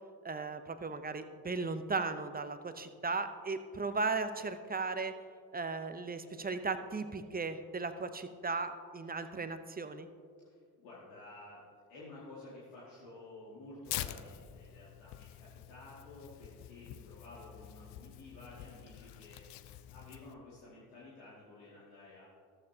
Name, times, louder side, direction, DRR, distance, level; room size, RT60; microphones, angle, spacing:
voice 1, 0.2-5.1 5.5-10.1, right 4 dB, 20° right, 10 dB, 0.8 m, -36 dB
voice 2, 10.4-11.6 11.9-22.3, left 2 dB, 75° left, -8 dB, 2.4 m, -52 dB
Tearing, 13.8-20.3, left 13 dB, 55° left, 0.7 m, -46 dB
14.0 x 14.0 x 2.8 m, 2.2 s
hypercardioid pair, 50°, 50 cm